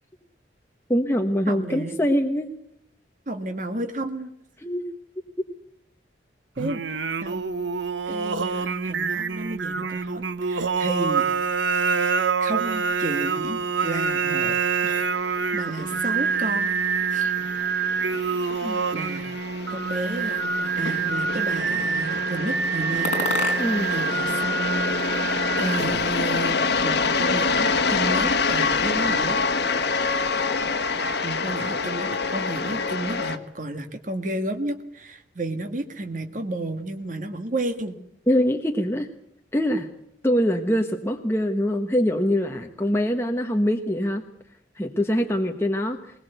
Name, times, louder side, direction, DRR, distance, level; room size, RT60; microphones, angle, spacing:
voice 1, 0.9-2.5 4.6-4.8 18.6-18.8 23.6-23.9 38.3-39.1 39.5-39.9 40.2-44.2 44.8-46.0, equal, 15° left, 3 dB, 1.2 m, -23 dB
voice 2, 1.5-2.0 3.3-4.3 6.6-6.8 7.2-7.5 8.1-11.3 12.4-14.6 14.8-15.1 15.5-16.7 17.1-17.3 18.4-18.6 18.9-19.3 19.7-24.8 25.6-29.4 30.0-30.2 31.2-38.0, right 2 dB, 45° right, 6 dB, 1.7 m, -32 dB
Singing, 6.6-26.2, right 5 dB, 85° right, 1.0 m, -26 dB
sound 1, 15.0-33.4, left 4 dB, 65° left, 1.5 m, -27 dB
sound 2, 19.8-20.9 21.5-22.2 23.0-24.0 24.3-25.3, left 2 dB, 40° left, 4.1 m, -33 dB
21.0 x 20.0 x 8.1 m, 0.71 s
head